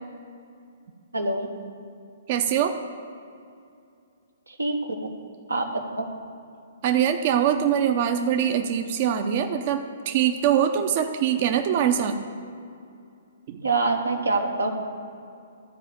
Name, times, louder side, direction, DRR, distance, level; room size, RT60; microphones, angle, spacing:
voice 1, 1.1-1.5 4.5-5.1 5.5-6.1 13.6-14.7, right 2 dB, 90° right, 3 dB, 1.3 m, -25 dB
voice 2, 2.3-2.8 6.8-12.2 13.5-13.6, right 9 dB, 45° right, 6 dB, 0.7 m, -23 dB
13.0 x 5.0 x 7.3 m, 2.5 s
figure-of-eight pair, 125°, 0 cm